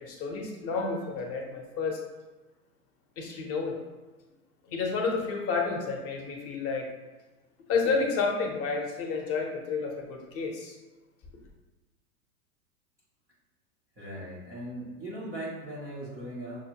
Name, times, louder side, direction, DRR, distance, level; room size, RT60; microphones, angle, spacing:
voice 1, 0.0-2.0 3.2-3.8 4.7-6.9 7.7-10.8, left 4 dB, 30° left, 1 dB, 0.7 m, -30 dB
voice 2, 14.0-16.6, right 1 dB, 10° right, -10 dB, 0.3 m, -39 dB
6.0 x 2.1 x 2.8 m, 1.2 s
hypercardioid pair, 120°, 46 cm